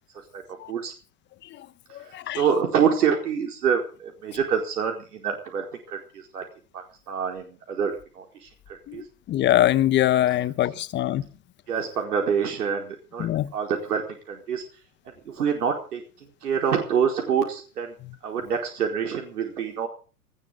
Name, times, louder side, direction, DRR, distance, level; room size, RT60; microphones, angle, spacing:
voice 1, 2.3-6.4 6.7-9.0 11.7-13.3 13.5-14.0 14.3-14.6 15.3-16.0 16.4-17.9 18.2-19.9, right 7 dB, 75° right, 4.6 m, -26 dB
voice 2, 8.9-11.2 13.2-13.5, left 13 dB, 25° left, 1.1 m, -23 dB
19.5 x 16.5 x 3.9 m
hypercardioid pair, 120°, 46 cm